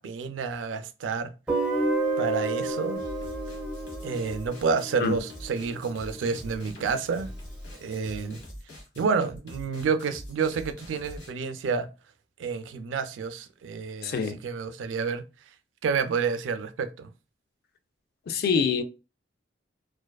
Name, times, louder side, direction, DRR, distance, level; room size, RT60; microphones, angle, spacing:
voice 1, 0.0-1.3 2.2-3.0 4.0-7.3 7.8-8.4 9.0-11.9 12.4-15.2 15.8-17.1, right 5 dB, 85° right, 0.3 m, -29 dB
Guitar, 1.5-6.3, right 2 dB, 5° right, 0.5 m, -31 dB
sound 1, 3.0-11.3, equal, 85° left, 0.9 m, -43 dB
voice 2, 14.0-14.4 18.3-18.8, left 5 dB, 55° left, 0.3 m, -25 dB
2.4 x 2.3 x 2.2 m
head